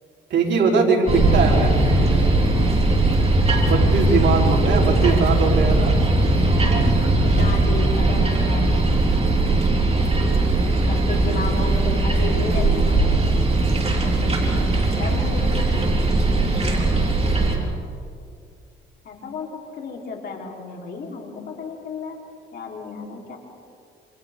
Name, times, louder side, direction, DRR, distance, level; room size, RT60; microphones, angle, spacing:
voice 1, 0.3-2.4 3.6-6.0, right 4 dB, 65° right, -1 dB, 3.9 m, -21 dB
sound 1, 1.1-17.6, right 2 dB, 30° right, 4.4 m, -19 dB
voice 2, 4.7-5.3 7.2-8.8 10.8-13.0 14.0-15.9 19.0-22.2 22.5-23.4, left 4 dB, 60° left, 0 dB, 4.0 m, -33 dB
28.5 x 26.0 x 3.8 m, 2.4 s
cardioid pair, 90°, 20 cm